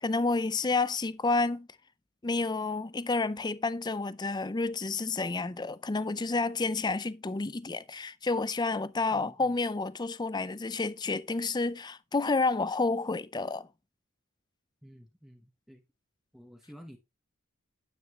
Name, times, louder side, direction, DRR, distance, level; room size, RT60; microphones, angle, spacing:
voice 1, 0.0-1.7 2.2-13.7, left 3 dB, 20° left, 0.5 m, -30 dB
voice 2, 14.8-15.8 16.3-17.0, equal, ahead, 1.0 m, -51 dB
9.5 x 9.3 x 2.9 m
head